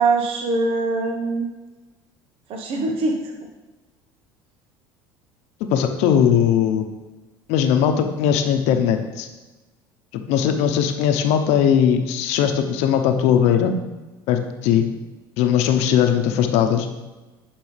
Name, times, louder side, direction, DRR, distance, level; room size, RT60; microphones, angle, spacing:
voice 1, 0.0-1.5 2.5-3.2, right 3 dB, 55° right, 3 dB, 1.0 m, -22 dB
voice 2, 5.7-6.8 7.5-9.3 10.3-13.7 14.3-14.9 15.4-16.9, left 8 dB, 70° left, 6 dB, 0.8 m, -19 dB
10.5 x 5.3 x 3.3 m, 1.1 s
hypercardioid pair, 80°, 12 cm